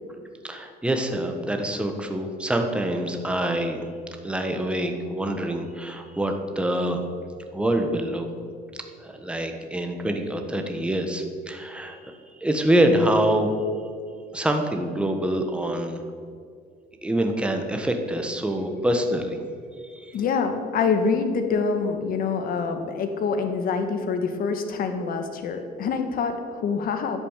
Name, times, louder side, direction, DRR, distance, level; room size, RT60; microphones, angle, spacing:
voice 1, 0.4-3.9 4.2-7.0 7.5-8.3 9.0-13.5 14.3-16.0 17.0-19.4 19.8-20.2, right 1 dB, 5° right, 4 dB, 1.3 m, -25 dB
voice 2, 20.1-27.2, left 5 dB, 60° left, 6 dB, 1.5 m, -26 dB
10.5 x 8.5 x 7.4 m, 2.2 s
cardioid pair, 110°, 17 cm